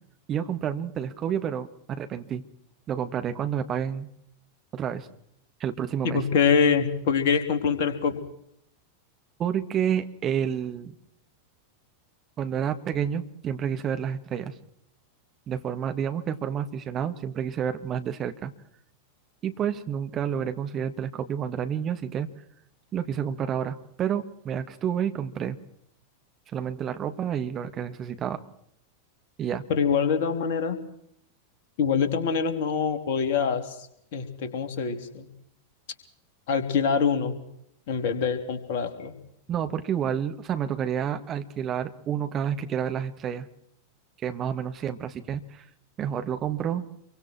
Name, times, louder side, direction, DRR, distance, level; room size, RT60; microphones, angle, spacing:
voice 1, 0.3-1.7 2.0-2.4 2.9-4.1 4.7-5.1 5.6-6.2 9.4-11.0 12.4-14.5 15.5-18.5 19.4-22.3 22.9-25.6 26.5-28.4 29.4-29.6 39.5-43.5 44.2-45.6 46.0-46.8, right 8 dB, 30° right, 8 dB, 2.1 m, -29 dB
voice 2, 6.0-8.2 29.7-30.8 31.8-33.7 34.1-35.3 36.5-37.4 37.9-39.1, left 6 dB, 50° left, 7 dB, 3.4 m, -24 dB
27.0 x 24.0 x 4.7 m, 0.72 s
figure-of-eight pair, 90°, 0 cm